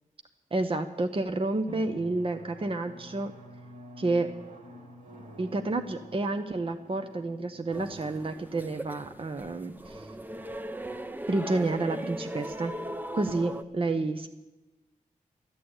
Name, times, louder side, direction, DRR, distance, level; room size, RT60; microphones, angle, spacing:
voice 1, 0.5-3.3 4.0-4.3 5.4-10.1 11.3-12.7 13.1-14.3, right 2 dB, 40° right, 7 dB, 0.9 m, -30 dB
Drum, 1.7-11.0, right 1 dB, 70° right, 2.8 m, -49 dB
sound 1, 7.7-13.6, right 1 dB, 15° right, 0.7 m, -39 dB
14.5 x 11.0 x 8.8 m, 1.0 s
wide cardioid pair, 90°, 14 cm